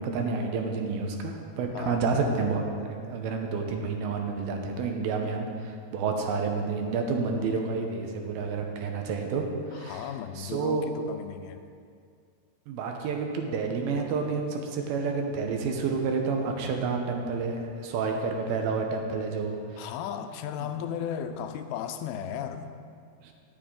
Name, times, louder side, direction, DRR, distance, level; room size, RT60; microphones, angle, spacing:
voice 1, 0.0-10.1 10.4-10.9 12.7-19.9 20.6-20.7 23.2-23.3, right 4 dB, 80° right, 3 dB, 2.8 m, -29 dB
voice 2, 9.7-11.7 19.8-22.8, left 9 dB, 85° left, 8 dB, 2.5 m, -35 dB
18.0 x 6.7 x 3.8 m, 2.2 s
omnidirectional pair, 4.4 m